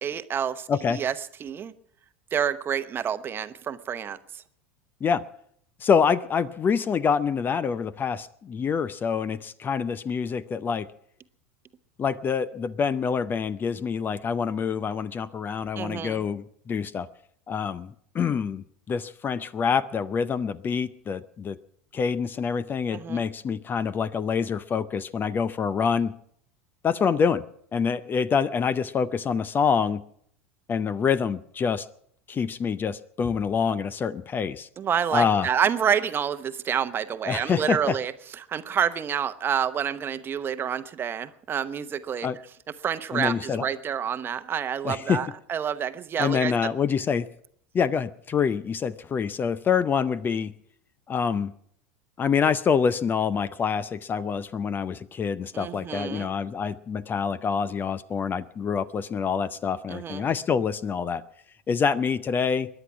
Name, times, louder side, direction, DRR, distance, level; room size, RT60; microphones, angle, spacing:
voice 1, 0.0-1.1 1.4-1.7 2.3-4.4 15.8-16.2 22.9-23.2 34.8-42.3 42.8-46.7 55.5-56.3 59.9-60.3, right 8 dB, 30° right, 12 dB, 0.9 m, -28 dB
voice 2, 0.7-1.0 5.0-5.2 5.8-10.9 12.0-17.1 17.5-21.6 21.9-26.1 26.8-27.4 27.7-30.0 30.7-31.9 32.3-34.7 35.1-35.5 37.3-38.0 42.2-42.4 43.1-43.7 44.8-45.2 46.2-47.3 47.7-50.5 51.1-51.5 52.2-61.2 61.7-62.7, left 6 dB, 30° left, 17 dB, 0.6 m, -26 dB
22.5 x 10.0 x 6.0 m, 0.66 s
hypercardioid pair, 85°, 7 cm